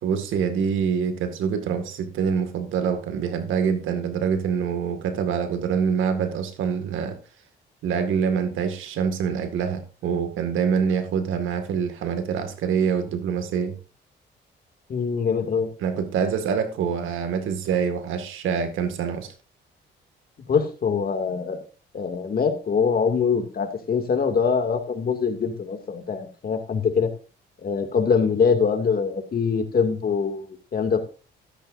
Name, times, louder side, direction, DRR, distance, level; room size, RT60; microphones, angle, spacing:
voice 1, 0.0-7.2 7.8-13.8 15.8-19.3, right 7 dB, 85° right, 2.0 m, -25 dB
voice 2, 14.9-15.7 20.5-21.6 21.9-27.1 27.6-31.0, left 6 dB, 50° left, 2.5 m, -23 dB
13.0 x 12.5 x 2.6 m
cardioid pair, 90°, 20 cm